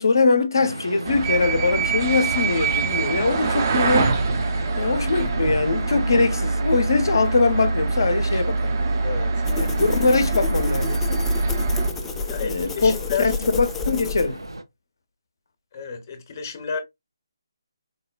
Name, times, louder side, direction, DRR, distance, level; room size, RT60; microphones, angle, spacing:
voice 1, 0.0-4.1 4.8-8.8 9.6-11.2 12.4-14.4, left 3 dB, 65° left, 0.6 m, -22 dB
sound 1, 0.5-14.6, right 2 dB, 90° right, 0.5 m, -36 dB
sound 2, 1.1-11.9, right 4 dB, 40° right, 0.5 m, -24 dB
voice 2, 4.5-4.9 9.0-9.8 12.3-13.3 15.7-16.8, left 6 dB, 35° left, 0.8 m, -32 dB
sound 3, 9.4-14.6, left 3 dB, 10° left, 0.3 m, -29 dB
3.7 x 2.1 x 2.3 m
figure-of-eight pair, 145°, 2 cm